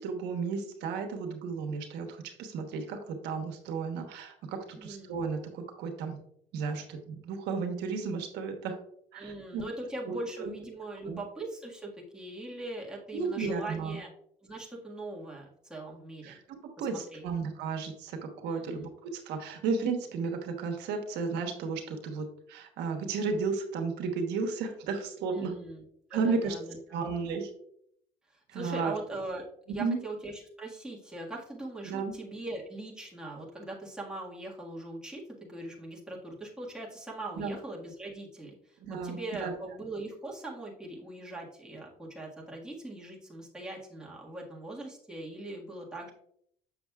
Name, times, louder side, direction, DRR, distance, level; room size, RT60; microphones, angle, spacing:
voice 1, 0.0-6.2 6.5-8.8 9.1-9.6 10.1-10.5 11.0-11.2 13.1-14.0 16.2-25.5 26.1-26.5 26.9-27.5 28.5-28.9 29.7-30.0 31.8-32.1 37.4-37.5 38.8-39.5, right 4 dB, 85° right, 4 dB, 1.1 m, -33 dB
voice 2, 4.7-5.1 9.2-14.1 14.4-16.4 16.8-17.2 18.5-18.9 25.3-25.8 26.1-27.0 28.3-46.1, right 2 dB, 5° right, -4 dB, 1.6 m, -41 dB
7.0 x 6.4 x 2.3 m, 0.69 s
cardioid pair, 110°, 17 cm